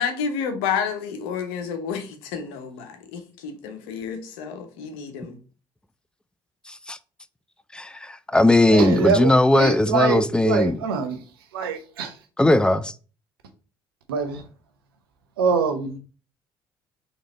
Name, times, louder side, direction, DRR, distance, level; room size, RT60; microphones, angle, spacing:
voice 1, 0.0-5.4, left 6 dB, 75° left, 0.8 m, -30 dB
voice 2, 6.7-7.0 7.7-10.8 12.4-12.9, left 1 dB, 5° left, 0.4 m, -19 dB
voice 3, 8.7-11.2 11.5-12.1 14.1-14.4 15.4-16.0, right 5 dB, 85° right, 0.7 m, -24 dB
3.9 x 3.2 x 4.0 m
hypercardioid pair, 55°, 12 cm